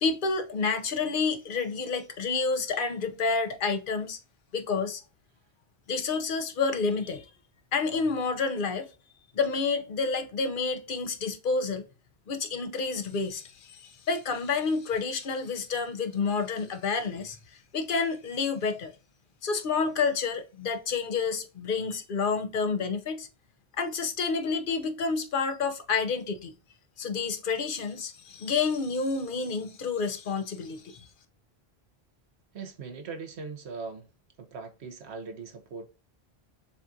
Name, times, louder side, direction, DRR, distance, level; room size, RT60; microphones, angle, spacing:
voice 1, 0.0-4.2 4.5-5.0 5.9-7.3 7.7-8.9 9.3-11.8 12.3-18.9 19.4-23.3 23.7-26.6 27.0-31.1, left 4 dB, 55° left, 0.9 m, -29 dB
voice 2, 32.5-34.1 34.4-35.9, right 4 dB, 85° right, 1.2 m, -40 dB
6.8 x 2.4 x 2.7 m
omnidirectional pair, 1.1 m